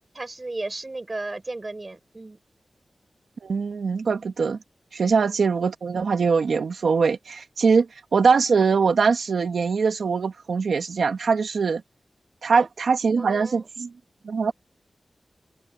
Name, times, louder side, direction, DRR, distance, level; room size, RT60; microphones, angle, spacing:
voice 1, 0.1-2.4 5.2-5.4 12.5-12.7 13.2-13.7 14.5-14.6, right 2 dB, 35° right, 4.5 m, -35 dB
voice 2, 3.4-4.6 4.9-11.8 12.4-13.9 14.2-14.5, right 5 dB, 85° right, 1.8 m, -22 dB
open air
cardioid pair, 60°, 0 cm